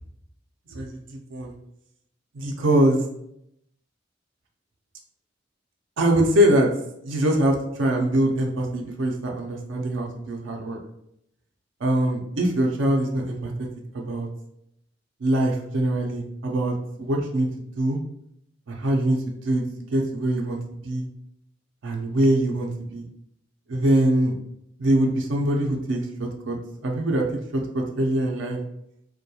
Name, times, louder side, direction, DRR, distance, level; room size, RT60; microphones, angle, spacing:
voice 1, 0.7-1.5 2.3-3.1 6.0-6.7 7.0-10.8 11.8-13.7 13.9-14.3 15.2-18.0 18.7-19.6 19.9-21.1 21.8-23.0 23.7-24.3 24.8-26.6 26.8-27.3 27.5-28.6, right 1 dB, 85° right, 1 dB, 0.5 m, -23 dB
2.2 x 2.2 x 2.7 m, 0.77 s
head